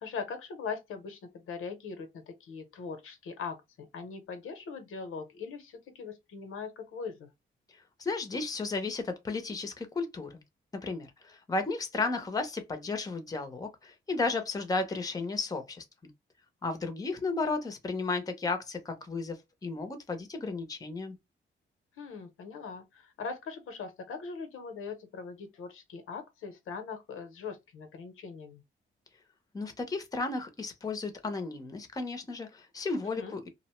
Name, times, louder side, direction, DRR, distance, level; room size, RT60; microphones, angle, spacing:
voice 1, 0.0-7.3 22.0-28.6 33.0-33.4, left 5 dB, 90° left, 0.7 m, -41 dB
voice 2, 7.7-10.4 10.8-16.1 16.6-21.2 29.5-33.5, left 3 dB, 15° left, 0.6 m, -34 dB
2.5 x 2.0 x 2.9 m
cardioid pair, 115°, 21 cm